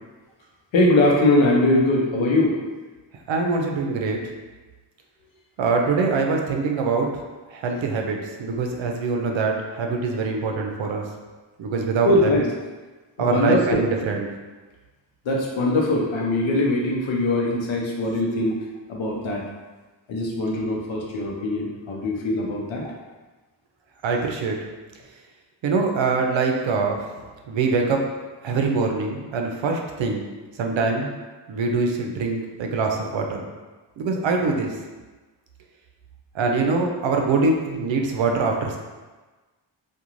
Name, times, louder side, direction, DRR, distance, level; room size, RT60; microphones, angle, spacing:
voice 1, 0.7-2.6 12.0-12.4 13.2-13.8 15.2-18.6 18.9-19.4 20.1-22.9, left 1 dB, 90° left, -1 dB, 0.7 m, -21 dB
voice 2, 3.3-4.2 5.6-7.2 7.5-11.0 11.6-12.4 13.2-14.3 24.0-24.6 25.6-27.2 27.5-28.1 28.4-30.2 30.6-31.1 31.5-33.4 34.0-34.7 36.3-38.8, right 4 dB, 75° right, 2 dB, 0.5 m, -23 dB
2.4 x 2.2 x 3.0 m, 1.3 s
cardioid pair, 70°, 45 cm